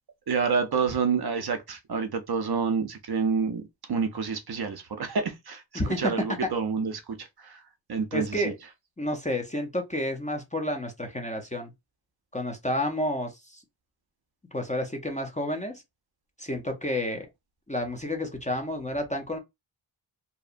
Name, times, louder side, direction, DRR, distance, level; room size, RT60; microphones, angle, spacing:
voice 1, 0.3-3.6 3.9-5.6 6.0-7.6 7.9-8.5, right 5 dB, 55° right, 0.5 m, -28 dB
voice 2, 5.8-6.1 6.4-6.5 8.1-8.5 9.0-11.7 12.3-13.6 14.5-15.8 16.4-17.3 17.7-19.4, left 1 dB, 15° left, 0.5 m, -30 dB
2.7 x 2.1 x 2.4 m
wide cardioid pair, 85°, 47 cm